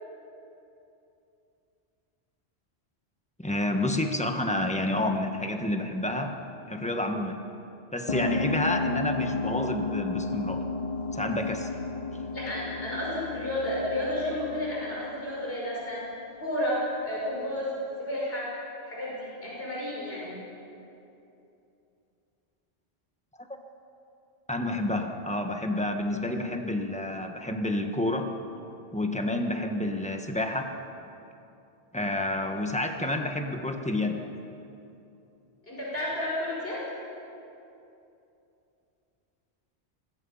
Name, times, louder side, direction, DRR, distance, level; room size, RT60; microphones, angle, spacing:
voice 1, 3.4-6.3 6.7-7.4 7.9-10.6 11.1-11.7 23.4-23.5 24.5-28.3 28.9-30.7 31.9-34.2, left 1 dB, 5° left, 4 dB, 1.4 m, -29 dB
sound 1, 8.1-16.2, left 3 dB, 40° left, 0.7 m, -33 dB
voice 2, 12.3-16.0 16.4-16.8 17.0-17.7 18.0-18.4 18.9-20.4 35.6-36.8, left 1 dB, 60° left, -6 dB, 6.0 m, -32 dB
25.5 x 20.5 x 5.7 m, 2.8 s
omnidirectional pair, 1.1 m